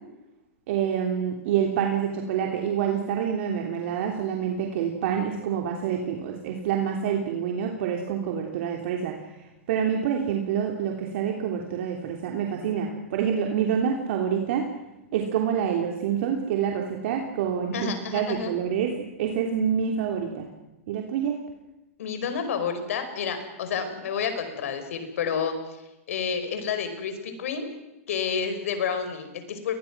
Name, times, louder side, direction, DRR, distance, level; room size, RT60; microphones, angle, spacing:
voice 1, 0.7-9.2 9.7-14.7 15.1-20.5 20.9-21.3, right 8 dB, 60° right, 2 dB, 3.2 m, -27 dB
voice 2, 17.7-18.6 22.0-25.5 26.1-27.7 28.1-29.7, left 6 dB, 70° left, 8 dB, 5.0 m, -29 dB
29.0 x 21.5 x 6.2 m, 0.98 s
hypercardioid pair, 130°, 8 cm